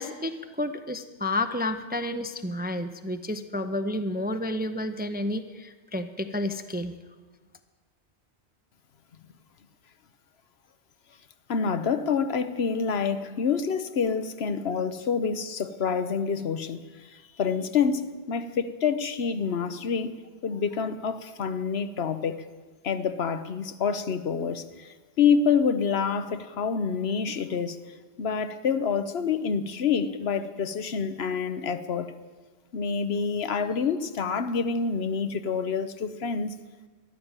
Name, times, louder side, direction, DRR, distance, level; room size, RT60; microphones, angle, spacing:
voice 1, 0.0-6.9, left 1 dB, 10° right, 0.5 m, -30 dB
voice 2, 11.5-20.1 20.4-22.4 22.8-24.9 25.2-27.8 28.2-32.1 32.7-36.6, left 6 dB, 70° left, 1.1 m, -27 dB
13.5 x 11.0 x 8.8 m
omnidirectional pair, 1.1 m